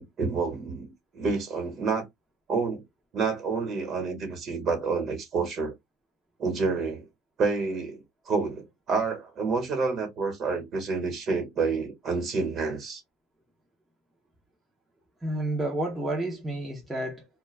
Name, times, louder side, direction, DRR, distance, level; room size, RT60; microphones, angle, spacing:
voice 1, 0.0-2.1 2.5-2.8 3.1-5.7 6.4-7.1 7.4-13.0, right 4 dB, 40° right, 1.1 m, -29 dB
voice 2, 15.2-17.3, right 1 dB, 10° right, 0.6 m, -30 dB
2.2 x 2.2 x 3.1 m
cardioid pair, 130°, 0 cm